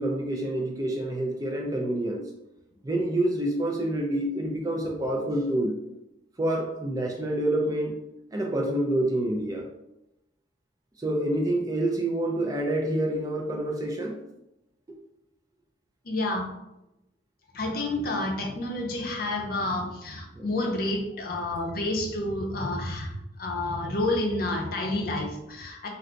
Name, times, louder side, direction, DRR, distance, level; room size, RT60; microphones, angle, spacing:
voice 1, 0.0-2.2 2.8-5.8 6.4-8.0 8.3-9.7 11.0-14.2 20.4-20.5, right 1 dB, 20° right, 0 dB, 0.3 m, -27 dB
voice 2, 16.0-16.5 17.5-25.9, left 2 dB, 50° left, 1 dB, 0.6 m, -29 dB
2.5 x 2.3 x 3.8 m, 0.90 s
head